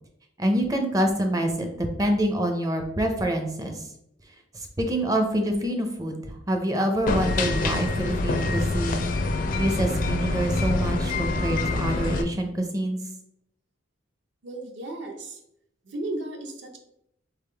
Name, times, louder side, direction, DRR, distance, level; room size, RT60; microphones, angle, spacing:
voice 1, 0.4-3.9 4.5-9.1 9.5-13.0, right 1 dB, 20° right, 5 dB, 0.5 m, -26 dB
sound 1, 7.1-12.2, left 2 dB, 45° left, 0.4 m, -26 dB
voice 2, 14.4-15.4 15.8-16.8, right 2 dB, 65° right, 4 dB, 0.8 m, -34 dB
4.0 x 3.5 x 3.3 m, 0.76 s
head